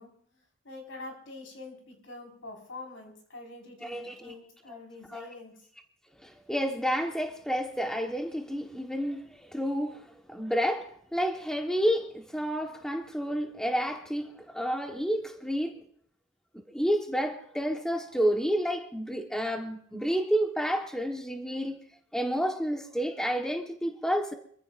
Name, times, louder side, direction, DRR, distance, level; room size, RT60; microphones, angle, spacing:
voice 1, 0.0-5.5, left 2 dB, 80° left, 1 dB, 4.7 m, -45 dB
voice 2, 3.8-4.2 4.7-4.8 5.1-5.2 6.2-15.8 16.5-21.8 22.1-24.3, equal, 5° left, 3 dB, 1.2 m, -30 dB
26.0 x 14.5 x 2.5 m, 0.62 s
head